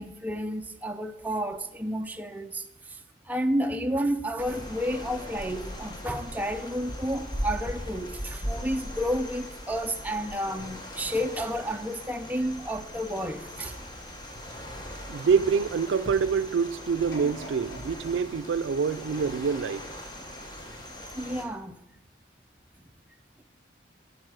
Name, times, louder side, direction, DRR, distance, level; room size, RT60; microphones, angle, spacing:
voice 1, 0.0-3.0 3.3-13.8 21.1-21.8, equal, 10° right, 0.4 m, -31 dB
sound 1, 4.4-21.5, equal, 20° left, 1.1 m, -39 dB
voice 2, 15.1-19.8, right 6 dB, 80° right, 0.4 m, -26 dB
sound 2, 17.1-20.2 20.7-20.8, equal, 75° left, 2.3 m, -46 dB
12.0 x 4.7 x 6.3 m
head